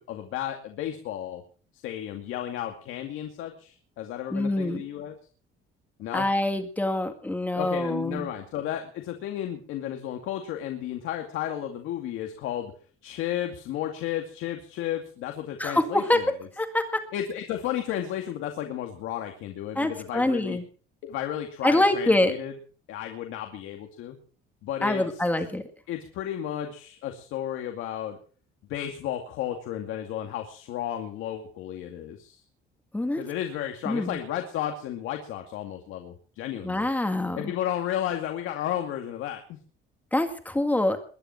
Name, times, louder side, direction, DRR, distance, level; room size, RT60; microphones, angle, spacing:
voice 1, 0.0-1.4 1.8-5.2 6.0-6.3 7.5-12.7 13.0-16.3 17.1-20.6 21.0-22.5 22.9-24.2 24.6-25.2 25.9-28.2 28.7-32.4 33.2-36.9 37.3-39.6, left 11 dB, 75° left, 4 dB, 2.3 m, -33 dB
voice 2, 4.3-4.8 6.1-8.3 15.6-16.2 16.6-17.0 19.8-20.6 21.6-22.3 24.8-25.6 32.9-33.2 33.9-34.2 36.6-37.5 40.1-41.0, left 1 dB, 5° left, 7 dB, 1.8 m, -25 dB
22.0 x 10.5 x 5.8 m, 0.42 s
cardioid pair, 170°, 21 cm